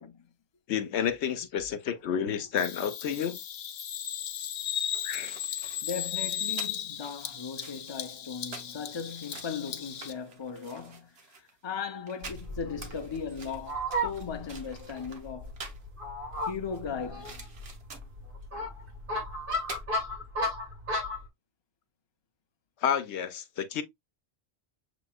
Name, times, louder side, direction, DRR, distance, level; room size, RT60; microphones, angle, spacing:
voice 1, 0.7-3.4 5.0-5.4 22.8-23.8, left 8 dB, 85° left, 1.0 m, -30 dB
Bird vocalization bird call bird song, 2.6-10.1, left 10 dB, 60° left, 0.8 m, -36 dB
sound 1, 4.6-15.9 16.3-18.2 19.2-19.3 19.5-19.8, right 4 dB, 70° right, 1.3 m, -48 dB
voice 2, 5.8-15.5 16.5-17.5, left 6 dB, 30° left, 0.6 m, -38 dB
Fowl, 12.2-21.2, equal, 50° right, 2.2 m, -35 dB
7.0 x 3.0 x 2.3 m
omnidirectional pair, 1.1 m